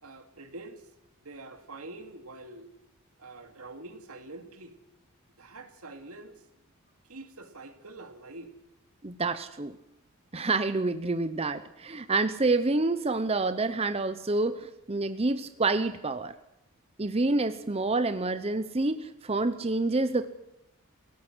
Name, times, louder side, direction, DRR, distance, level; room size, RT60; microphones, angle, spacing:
voice 1, 0.0-0.9 1.2-2.7 3.2-4.8 5.4-6.5 7.0-8.5, right 2 dB, 80° right, 7 dB, 2.5 m, -45 dB
voice 2, 9.0-9.8 10.3-16.3 17.0-20.3, right 3 dB, 25° right, 11 dB, 0.7 m, -28 dB
28.5 x 17.0 x 6.2 m, 0.87 s
head